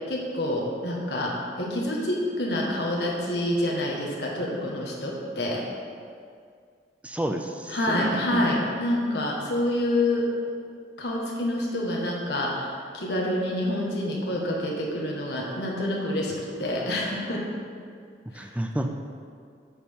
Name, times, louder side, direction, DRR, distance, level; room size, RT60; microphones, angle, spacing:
voice 1, 0.1-5.6 7.7-10.2 11.0-16.3 16.6-17.4 18.3-18.5, left 1 dB, 65° left, -3 dB, 1.6 m, -27 dB
voice 2, 7.0-8.5 18.3-18.9, right 1 dB, 5° right, 4 dB, 0.4 m, -30 dB
8.8 x 6.7 x 3.7 m, 2.2 s
head